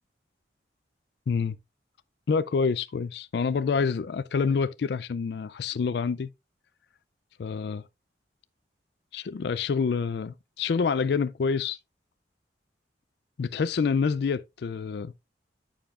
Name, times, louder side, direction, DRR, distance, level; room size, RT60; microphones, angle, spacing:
voice 1, 1.3-1.6 2.3-6.3 7.4-7.8 9.1-11.8 13.4-15.3, left 5 dB, 60° left, 0.4 m, -27 dB
9.0 x 6.9 x 2.4 m
head